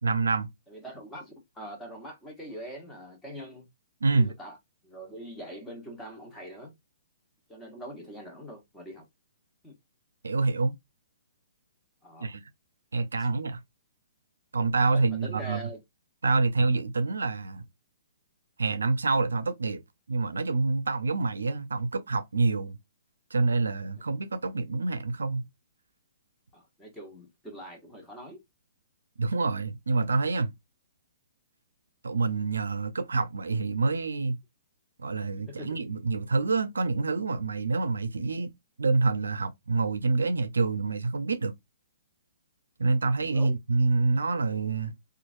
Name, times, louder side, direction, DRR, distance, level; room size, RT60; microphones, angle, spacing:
voice 1, 0.0-0.5 4.0-4.3 10.2-10.7 12.2-12.4 12.9-13.6 14.5-15.6 16.2-17.6 18.6-19.8 20.1-22.8 23.3-25.4 29.2-30.5 32.0-34.4 35.0-38.5 38.8-41.5 42.8-44.9, right 3 dB, 85° right, 0.4 m, -27 dB
voice 2, 0.7-3.7 4.1-4.6 4.8-6.7 7.5-9.0 9.6-9.8 12.0-12.3 14.9-15.8 26.5-28.4 35.6-35.7 43.3-43.5, equal, 10° left, 1.1 m, -43 dB
3.0 x 2.3 x 2.5 m
hypercardioid pair, 135°, 0 cm